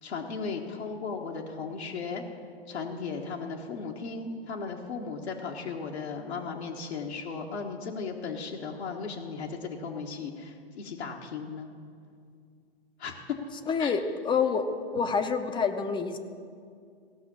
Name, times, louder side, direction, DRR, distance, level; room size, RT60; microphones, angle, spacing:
voice 1, 0.0-2.2 2.7-11.7 13.0-13.4 13.8-14.0, left 5 dB, 80° left, 0 dB, 1.3 m, -36 dB
voice 2, 13.7-16.2, left 5 dB, 15° left, 8 dB, 0.6 m, -27 dB
16.5 x 5.9 x 7.2 m, 2.3 s
hypercardioid pair, 110°, 32 cm